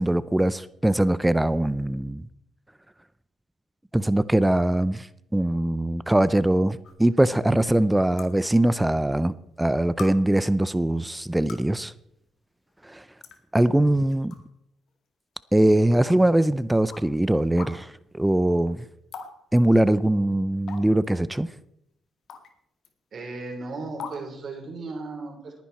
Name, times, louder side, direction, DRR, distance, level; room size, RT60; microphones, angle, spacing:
voice 1, 0.0-2.2 3.9-11.9 12.8-13.0 13.5-14.3 15.5-18.8 19.5-21.5, right 1 dB, 10° right, 0.5 m, -22 dB
sound 1, 6.8-6.9 8.2-8.3 9.3-9.4 10.0-10.1 11.3-11.7 12.7-12.8 13.2-13.4 14.1-14.4 14.9-15.0 15.9-16.0 16.9-17.0 17.6-17.7 19.1-19.3 19.6-19.7 20.7-21.1 22.3-22.5 22.8-22.9 24.0-24.2, left 6 dB, 65° left, 2.0 m, -39 dB
voice 2, 23.1-25.6, right 3 dB, 50° right, 4.0 m, -36 dB
18.5 x 10.5 x 4.3 m
cardioid pair, 90°, 0 cm